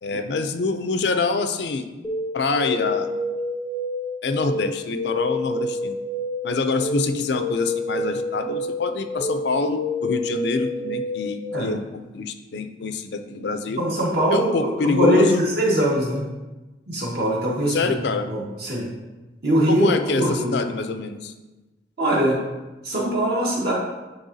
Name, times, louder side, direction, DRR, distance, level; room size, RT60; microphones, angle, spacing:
voice 1, 0.0-1.8 2.3-3.1 4.2-6.0 6.4-11.8 12.1-13.8 14.3-15.4 17.7-18.3 19.7-21.3, left 3 dB, 65° left, 8 dB, 0.4 m, -25 dB
sound 1, 2.0-11.6, left 2 dB, 10° left, 0.5 m, -28 dB
voice 2, 13.8-16.3 16.9-17.9 18.3-18.9 19.4-20.6 22.0-22.4 22.8-23.7, equal, 60° right, -5 dB, 1.7 m, -22 dB
10.0 x 3.5 x 2.7 m, 1.1 s
head